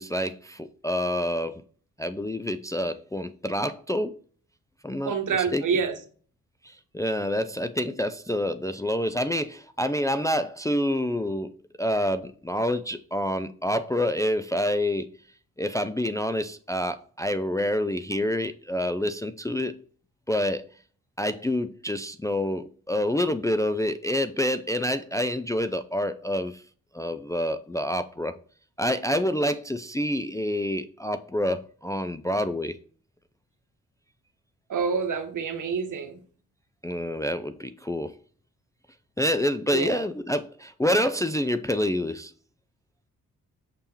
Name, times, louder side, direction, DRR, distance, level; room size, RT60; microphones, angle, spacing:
voice 1, 0.0-1.5 2.0-4.2 4.8-5.1 5.5-5.6 6.6-15.1 15.6-19.7 20.3-20.6 21.2-26.6 26.9-28.4 28.8-32.8 36.8-38.2 39.2-42.3, left 1 dB, 10° left, 0.4 m, -27 dB
voice 2, 5.0-6.0 34.7-36.2 39.7-40.0, right 5 dB, 60° right, 1.2 m, -27 dB
6.8 x 3.5 x 4.4 m
supercardioid pair, 55°, 35 cm